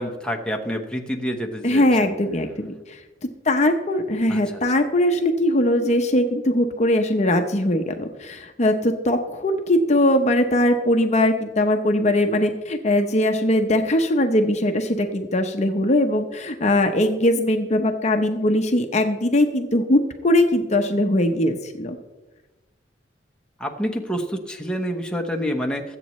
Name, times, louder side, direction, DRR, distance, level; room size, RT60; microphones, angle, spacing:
voice 1, 0.0-2.1 4.2-4.4 23.6-26.0, equal, 5° left, 2 dB, 1.0 m, -28 dB
voice 2, 1.6-3.0 3.4-22.0, left 1 dB, 40° left, 5 dB, 0.8 m, -20 dB
21.0 x 8.2 x 3.1 m, 1.1 s
head